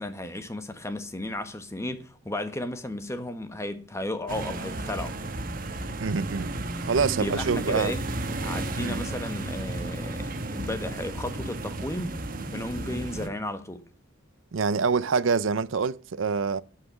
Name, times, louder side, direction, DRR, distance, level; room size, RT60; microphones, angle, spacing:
voice 1, 0.0-5.2 7.2-8.0 8.4-12.2 12.5-13.8, left 1 dB, 15° left, 1.2 m, -34 dB
sound 1, 4.3-13.3, right 2 dB, 45° right, 1.3 m, -33 dB
voice 2, 6.0-6.5 6.8-7.9 8.8-9.1 14.5-16.6, right 5 dB, 85° right, 0.6 m, -26 dB
11.5 x 5.8 x 8.8 m
head